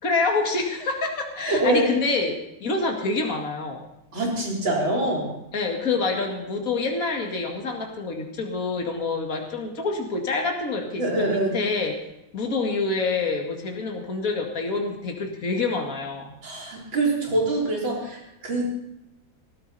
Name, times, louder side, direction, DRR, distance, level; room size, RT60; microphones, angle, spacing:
voice 1, 0.0-2.3 2.6-3.8 5.5-11.9 12.3-16.3, left 3 dB, 45° left, 2 dB, 2.4 m, -27 dB
voice 2, 1.5-1.9 4.1-5.3 11.0-11.6 16.4-18.7, right 2 dB, 85° right, -2 dB, 4.6 m, -24 dB
19.0 x 13.5 x 4.2 m, 0.85 s
omnidirectional pair, 2.1 m